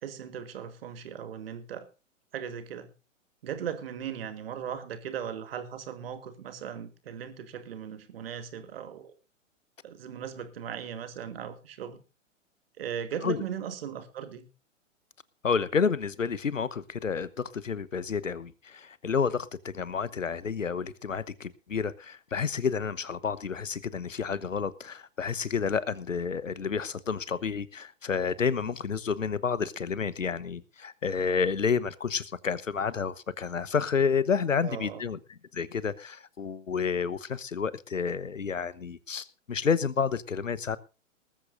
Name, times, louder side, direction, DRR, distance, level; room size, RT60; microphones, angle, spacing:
voice 1, 0.0-1.9 2.3-2.9 3.4-9.2 9.8-12.0 12.8-14.5 34.6-35.0, right 8 dB, 45° right, 2.3 m, -38 dB
voice 2, 15.4-35.2 35.5-40.8, left 6 dB, 75° left, 1.1 m, -30 dB
19.5 x 14.0 x 2.6 m
figure-of-eight pair, 115°, 39 cm